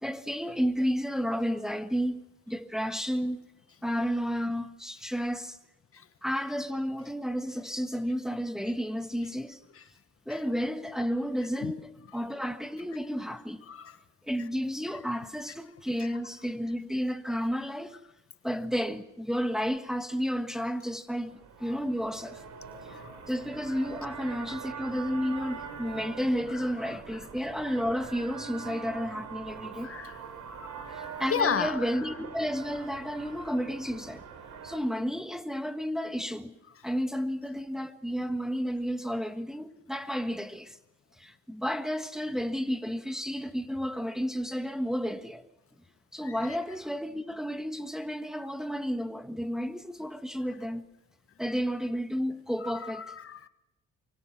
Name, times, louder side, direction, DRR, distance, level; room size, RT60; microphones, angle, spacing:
voice 1, 0.0-2.2 2.5-3.4 3.8-5.6 6.2-9.6 10.3-13.6 14.2-18.0 18.4-22.4 22.9-23.0 23.3-29.9 30.9-34.2 34.6-36.5 36.8-40.8 41.2-45.4 46.1-50.9 51.4-53.1, equal, ahead, 1.4 m, -32 dB
sound 1, 21.1-34.8, right 6 dB, 75° right, 4.0 m, -43 dB
voice 2, 22.9-23.3 23.7-23.8 25.4-25.5 26.5-27.0 29.8-30.2 30.5-32.1 46.2-46.6 52.6-53.5, left 7 dB, 45° left, 1.4 m, -35 dB
24.5 x 24.0 x 6.0 m
cardioid pair, 90°, 30 cm